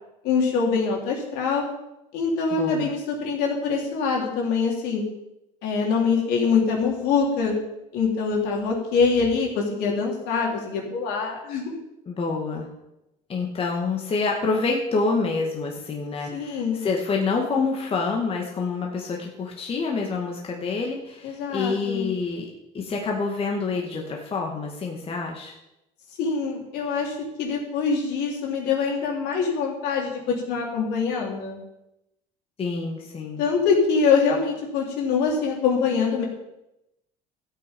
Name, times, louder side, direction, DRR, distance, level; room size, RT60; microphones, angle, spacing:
voice 1, 0.2-1.6 2.1-5.0 5.6-7.5 7.9-11.8 16.3-16.8 21.2-22.1 26.2-31.6 33.4-36.2, left 5 dB, 75° left, -1 dB, 3.7 m, -24 dB
voice 2, 2.5-2.9 12.1-12.7 13.3-22.5 22.7-25.5 32.6-33.4, left 4 dB, 35° left, 0 dB, 2.0 m, -27 dB
13.5 x 8.4 x 5.4 m, 0.90 s
cardioid pair, 120°, 17 cm